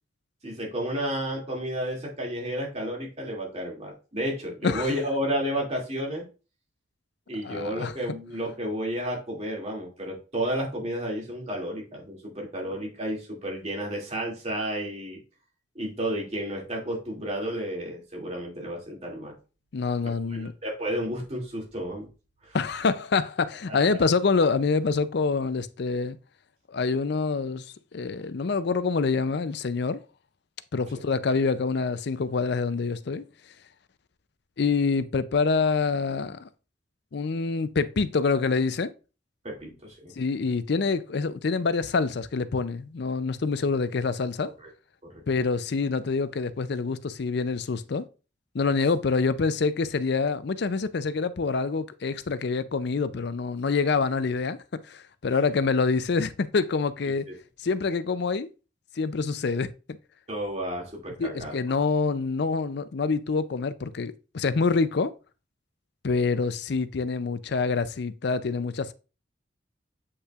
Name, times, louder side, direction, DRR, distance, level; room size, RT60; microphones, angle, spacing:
voice 1, 0.4-6.2 7.3-15.2 15.7-19.3 20.3-22.1 22.4-22.6 23.7-24.0 39.4-40.1 45.1-45.2 57.3-57.4 60.3-61.5, equal, 35° right, 2.4 m, -32 dB
voice 2, 7.4-7.9 19.7-20.5 22.5-26.2 26.7-30.0 30.7-33.2 34.6-36.5 37.1-38.9 40.2-44.5 45.3-48.1 48.5-57.3 57.6-58.5 59.0-60.0 61.2-65.1 66.0-68.9, left 4 dB, 55° left, 0.5 m, -26 dB
8.4 x 5.4 x 2.4 m
head